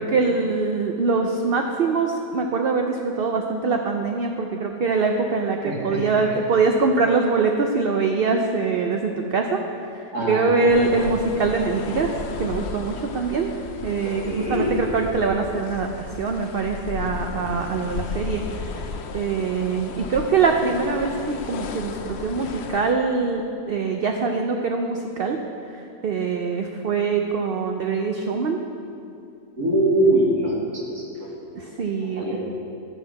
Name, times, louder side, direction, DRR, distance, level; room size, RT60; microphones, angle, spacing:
voice 1, 0.0-12.1 12.4-25.4 25.7-28.6 31.6-32.4, right 4 dB, 55° right, 3 dB, 0.6 m, -23 dB
voice 2, 5.6-6.0 10.1-11.1 14.0-14.7 29.5-31.6 32.0-32.4, right 1 dB, 85° right, -4 dB, 2.7 m, -24 dB
sound 1, 10.7-22.9, left 5 dB, 60° left, 0.7 m, -34 dB
11.0 x 8.0 x 5.8 m, 2.6 s
omnidirectional pair, 1.6 m